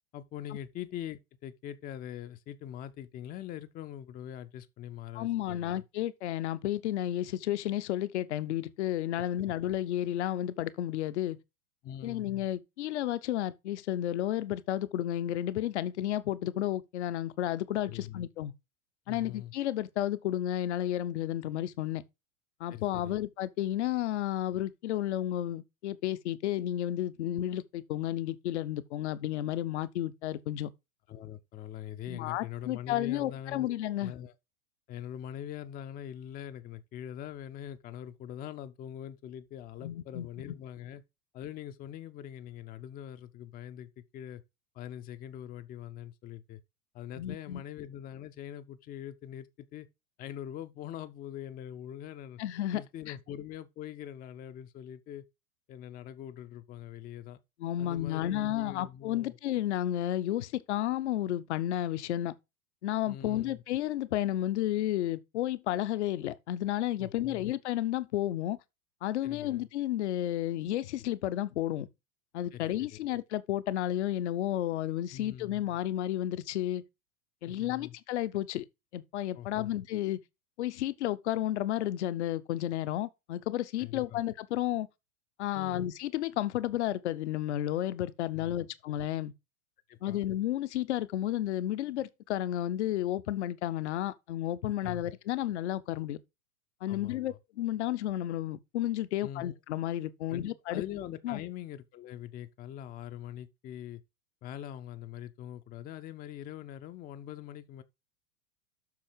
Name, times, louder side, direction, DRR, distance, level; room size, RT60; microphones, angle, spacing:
voice 1, 0.1-5.8 9.4-9.5 11.8-12.3 17.8-18.2 19.1-19.5 22.7-23.2 31.1-33.7 34.0-34.3 34.9-41.0 41.3-44.4 44.7-46.6 46.9-49.9 50.2-52.4 52.7-55.3 55.7-57.4 57.8-59.4 63.1-63.6 67.0-67.5 69.2-69.7 72.5-73.0 75.1-75.6 77.5-77.9 79.4-79.8 83.8-84.2 85.5-85.9 88.3-88.7 89.9-90.2 94.6-95.0 96.9-97.4 99.2-99.6 100.3-104.0 104.4-107.8, left 11 dB, 20° left, 0.7 m, -43 dB
voice 2, 5.1-11.4 12.0-18.5 19.1-22.0 22.6-30.7 32.1-34.1 39.8-40.3 47.2-47.6 52.4-52.8 53.1-53.2 57.6-62.3 62.8-68.6 69.0-71.9 72.3-76.8 77.4-78.6 78.9-80.2 80.6-84.9 85.4-89.3 90.0-96.2 96.8-100.8 101.2-101.4, left 13 dB, 50° left, 0.9 m, -32 dB
7.7 x 6.3 x 5.2 m
figure-of-eight pair, 95°, 43 cm